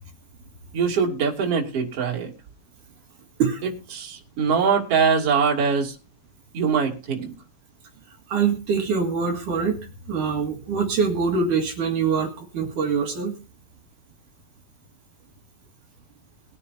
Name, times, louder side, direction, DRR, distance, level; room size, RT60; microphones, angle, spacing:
voice 1, 0.7-2.3 3.9-5.9 6.5-7.3, right 6 dB, 35° right, 0 dB, 3.0 m, -22 dB
voice 2, 8.3-13.4, right 5 dB, 55° right, 2 dB, 2.4 m, -24 dB
22.0 x 9.8 x 2.8 m, 0.33 s
omnidirectional pair, 5.8 m